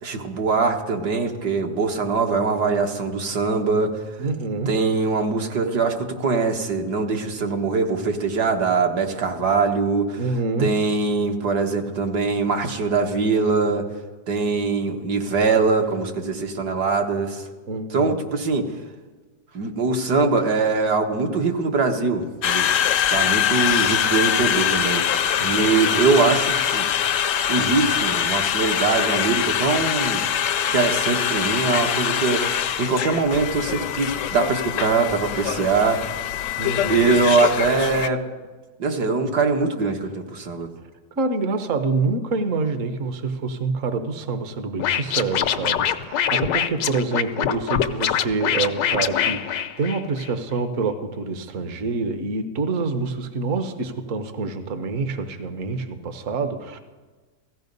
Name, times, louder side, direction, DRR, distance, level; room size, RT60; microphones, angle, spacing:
voice 1, 0.0-3.9 4.7-10.2 10.6-13.8 14.3-17.5 17.9-18.7 19.5-22.7 23.1-25.0 25.4-26.9 27.5-30.2 30.7-36.0 36.9-38.2 38.8-40.7, right 4 dB, 65° right, 3 dB, 1.9 m, -22 dB
voice 2, 4.2-4.8 10.2-10.8 17.7-18.2 25.4-26.0 28.3-28.4 36.6-37.1 41.2-56.8, right 3 dB, 50° right, 8 dB, 1.4 m, -27 dB
Conversation, 22.4-38.1, left 9 dB, 65° left, 0.8 m, -23 dB
Scratching (performance technique), 44.8-50.3, left 9 dB, 85° left, 1.4 m, -24 dB
17.0 x 15.0 x 5.4 m, 1.3 s
omnidirectional pair, 1.9 m